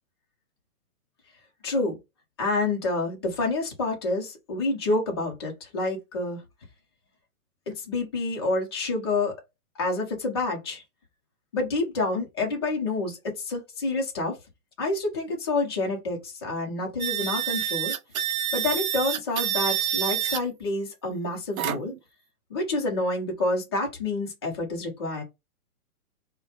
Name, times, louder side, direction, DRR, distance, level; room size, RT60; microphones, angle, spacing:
voice 1, 1.6-2.0 2.4-6.4 7.7-9.3 9.8-10.8 11.5-14.4 14.8-17.9 18.5-21.9 22.5-25.2, left 2 dB, 20° left, 0.5 m, -28 dB
sound 1, 17.0-20.4 21.6-22.0, right 10 dB, 70° right, 0.6 m, -27 dB
4.3 x 2.1 x 2.8 m
hypercardioid pair, 165°, 45 cm